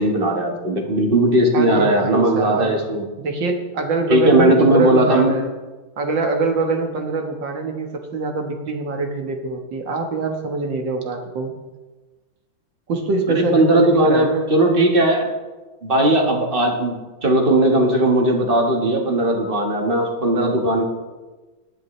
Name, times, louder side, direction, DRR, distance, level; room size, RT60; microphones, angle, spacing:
voice 1, 0.0-3.1 4.1-5.3 13.3-15.3 15.8-16.9 17.2-20.8, right 1 dB, 30° right, 2 dB, 1.5 m, -17 dB
voice 2, 1.5-5.5 6.0-11.5 12.9-14.5, right 3 dB, 65° right, 4 dB, 2.0 m, -24 dB
18.0 x 11.0 x 3.3 m, 1.2 s
omnidirectional pair, 2.3 m